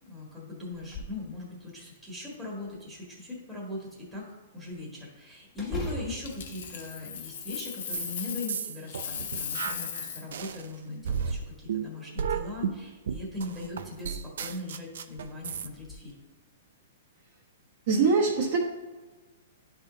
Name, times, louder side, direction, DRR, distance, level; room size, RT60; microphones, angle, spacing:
voice 1, 0.1-4.3 4.5-16.1, left 2 dB, ahead, -5 dB, 1.7 m, -39 dB
sound 1, 0.7-1.2 1.7-1.8 2.3-3.1 5.5-7.5 7.9-8.7 9.3-10.2 11.1-11.7 13.2-13.3 13.8-14.1 14.5-14.6 15.7-15.9, left 3 dB, 15° left, 1.4 m, -41 dB
Coin (dropping), 6.2-8.6 8.9-10.3 13.2-13.4, left 7 dB, 60° left, 0.8 m, -37 dB
sound 2, 7.9-8.2 8.5-10.7 11.0-15.7, right 7 dB, 70° right, 0.5 m, -33 dB
voice 2, 17.9-18.6, right 4 dB, 50° right, -4 dB, 1.2 m, -23 dB
10.5 x 3.6 x 3.9 m, 1.2 s
hypercardioid pair, 155°, 0 cm